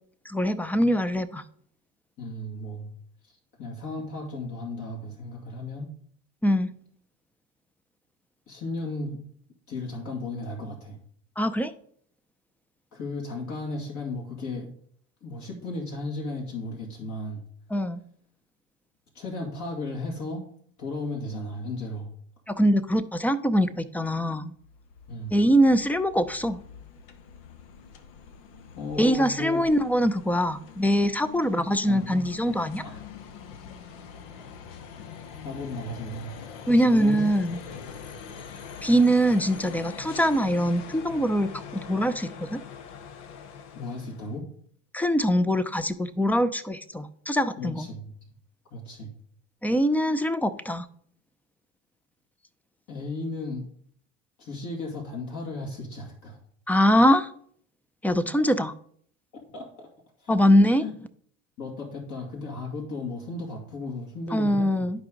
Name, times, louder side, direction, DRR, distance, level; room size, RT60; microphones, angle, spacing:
voice 1, 0.3-1.4 6.4-6.7 11.4-11.7 17.7-18.0 22.5-24.5 25.3-26.6 29.0-32.8 36.7-37.6 38.8-42.6 44.9-47.9 49.6-50.9 56.7-57.3 58.0-58.7 60.3-60.8 64.3-65.0, equal, 5° left, 13 dB, 0.5 m, -23 dB
voice 2, 2.2-2.9 3.6-5.9 8.5-9.2 9.7-11.0 12.9-14.7 15.2-17.4 19.1-20.5 20.8-22.1 25.1-25.3 28.8-29.6 31.5-32.2 32.8-33.0 35.0-35.1 35.4-37.3 43.8-44.5 47.6-48.0 48.7-49.1 52.9-53.7 54.4-56.4 59.3-59.9 60.2-60.4 60.8-60.9 61.6-64.9, left 2 dB, 50° left, -1 dB, 2.3 m, -35 dB
sound 1, 24.5-44.4, left 7 dB, 70° left, 1.0 m, -43 dB
11.0 x 4.9 x 3.9 m, 0.62 s
hypercardioid pair, 85°, 38 cm